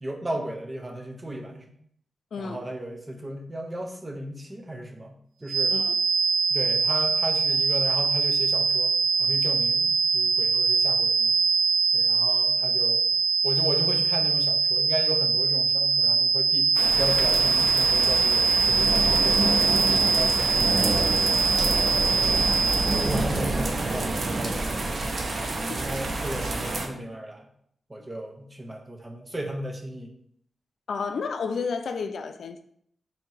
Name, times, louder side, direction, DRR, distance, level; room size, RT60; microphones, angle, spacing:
voice 1, 0.0-1.6 2.4-5.2 5.4-5.7 6.5-11.4 11.9-13.0 13.4-16.7 17.0-21.5 21.9-22.6 23.0-25.1 25.6-27.5 27.9-30.1, right 1 dB, 20° right, 2 dB, 0.7 m, -35 dB
voice 2, 2.3-2.6 5.7-6.0 30.9-32.6, left 5 dB, 75° left, 8 dB, 0.3 m, -31 dB
sound 1, 5.5-23.2, right 5 dB, 90° right, 0.3 m, -23 dB
sound 2, 16.7-26.9, right 2 dB, 55° right, 0.7 m, -28 dB
3.4 x 2.8 x 4.6 m, 0.67 s
wide cardioid pair, 100°, 0 cm